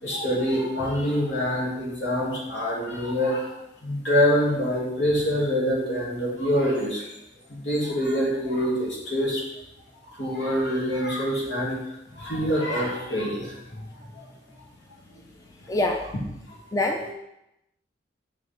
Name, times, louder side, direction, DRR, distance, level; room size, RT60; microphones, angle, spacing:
voice 1, 0.0-3.5 3.8-7.1 7.5-9.4 10.2-11.7 12.1-13.6 13.9-14.3 16.5-16.6 17.0-17.1, equal, 75° left, -4 dB, 2.7 m, -25 dB
voice 2, 15.7-16.1 16.7-17.1, left 2 dB, 20° left, 3 dB, 0.4 m, -25 dB
6.4 x 5.1 x 6.0 m, 0.87 s
head